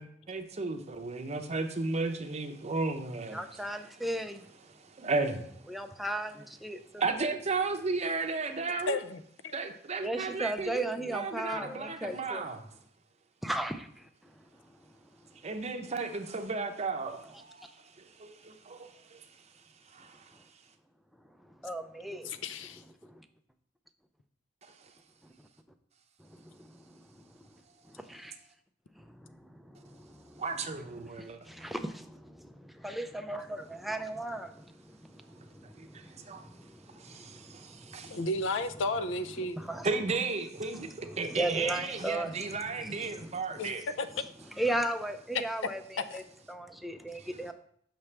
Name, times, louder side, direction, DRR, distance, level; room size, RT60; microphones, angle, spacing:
voice 1, 0.0-3.6 4.7-5.5 7.0-9.0 9.5-12.7 15.4-17.6 18.0-19.2 19.9-20.3 24.6-24.7 30.4-31.5 35.8-36.4 37.0-38.2 39.8-43.9 47.2-47.3, right 3 dB, 35° right, 5 dB, 0.7 m, -34 dB
voice 2, 3.3-4.5 5.7-7.0 10.0-12.4 13.4-14.1 21.6-22.3 23.1-23.2 26.3-27.0 28.0-28.4 29.0-30.2 31.2-38.2 39.4-39.9 40.7-42.5 42.8-43.7 44.6-46.2 46.5-47.5, right 1 dB, ahead, 7 dB, 0.4 m, -37 dB
voice 3, 8.9-9.5 11.5-11.7 22.2-22.8 38.1-39.6 43.6-43.7 44.0-44.1 46.1-46.2, left 2 dB, 70° left, 11 dB, 0.5 m, -33 dB
7.1 x 5.9 x 3.3 m, 0.66 s
head